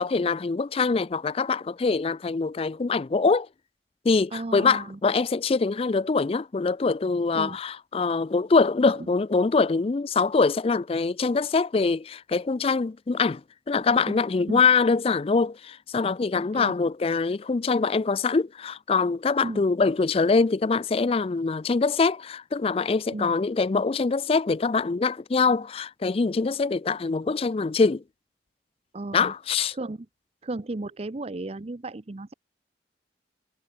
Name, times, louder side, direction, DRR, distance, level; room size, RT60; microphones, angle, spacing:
voice 1, 0.0-3.5 4.0-13.4 13.7-28.0 29.1-29.7, left 4 dB, 35° left, 0.4 m, -24 dB
voice 2, 4.3-5.0 7.3-7.6 9.0-9.1 14.1-14.2 14.5-14.6 16.5-16.7 19.4-19.6 23.1-23.3 28.9-29.3 29.7-30.0 30.4-32.3, right 2 dB, 35° right, 0.6 m, -34 dB
head